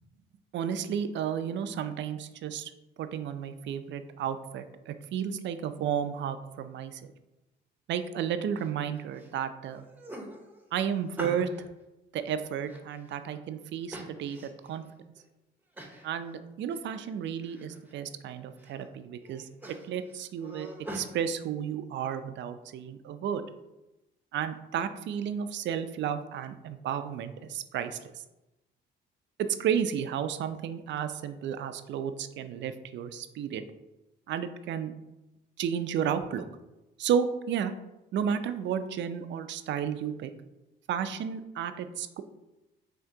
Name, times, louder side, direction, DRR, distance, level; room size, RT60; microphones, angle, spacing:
voice 1, 0.5-2.7 3.0-7.0 7.9-9.8 10.7-11.5 12.1-14.8 16.0-20.7 20.9-23.4 24.3-28.1 29.4-33.6 34.3-34.9 35.6-36.4 37.0-37.7 38.1-40.3 40.9-42.2, right 8 dB, 65° right, 10 dB, 0.4 m, -32 dB
sound 1, 8.5-9.3 9.7-11.7 12.2-13.3 13.9-14.7 15.2-15.3 15.7-16.1 16.4-17.1 17.4-18.0 18.4-18.9 19.2-21.1, right 1 dB, 10° right, 0.8 m, -43 dB
5.7 x 2.8 x 2.7 m, 0.97 s
cardioid pair, 90°, 20 cm